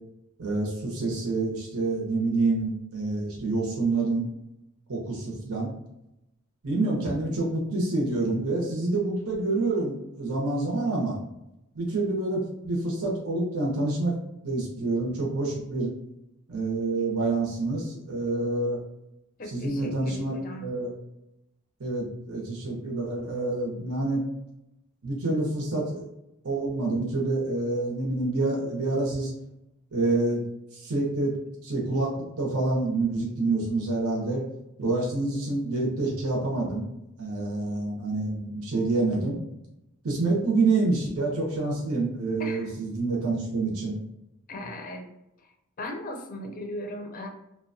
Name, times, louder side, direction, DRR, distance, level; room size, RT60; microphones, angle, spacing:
voice 1, 0.4-4.2 4.9-5.7 6.6-11.2 11.7-14.1 14.4-15.9 16.5-18.8 19.5-20.3 20.6-20.9 21.8-24.2 25.0-26.0 26.4-29.3 29.9-30.4 30.7-31.3 31.6-32.1 32.4-34.4 34.8-36.8 37.2-39.4 40.0-43.9, right 2 dB, 85° right, -3 dB, 0.8 m, -27 dB
voice 2, 19.4-20.7 42.4-42.7 44.5-45.1 45.4-45.5 45.8-47.3, left 1 dB, 40° left, 3 dB, 0.4 m, -37 dB
2.7 x 2.2 x 2.6 m, 0.87 s
head